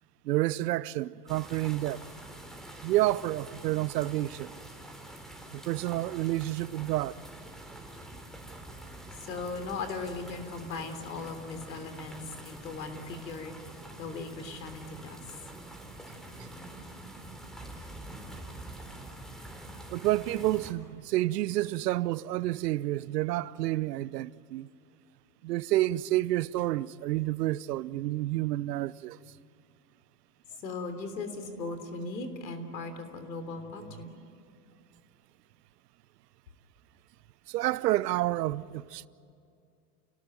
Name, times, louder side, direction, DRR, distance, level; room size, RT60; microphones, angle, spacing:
voice 1, 0.2-2.0 2.8-4.5 5.5-7.2 19.9-24.7 25.4-29.2 37.5-39.1, right 16 dB, 75° right, 0.8 m, -29 dB
sound 1, 1.3-20.7, right 1 dB, ahead, 3.7 m, -46 dB
voice 2, 9.2-13.6 13.9-15.2 30.6-34.1, left 3 dB, 85° left, 3.5 m, -38 dB
29.5 x 18.5 x 9.3 m
hypercardioid pair, 105°, 49 cm